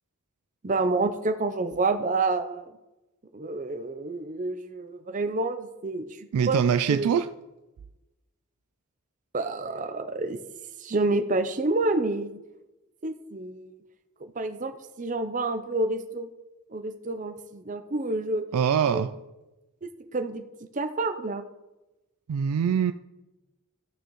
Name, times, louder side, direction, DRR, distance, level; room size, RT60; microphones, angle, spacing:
voice 1, 0.6-2.7 3.3-6.6 6.9-7.1 9.3-10.4 10.8-12.4 13.0-13.8 14.2-16.3 16.7-18.4 18.9-19.1 19.8-20.4 20.7-21.5, right 2 dB, 35° right, 0.6 m, -28 dB
voice 2, 6.3-7.3 18.5-19.1 22.3-22.9, right 7 dB, 90° right, 0.3 m, -23 dB
14.0 x 6.6 x 3.1 m
head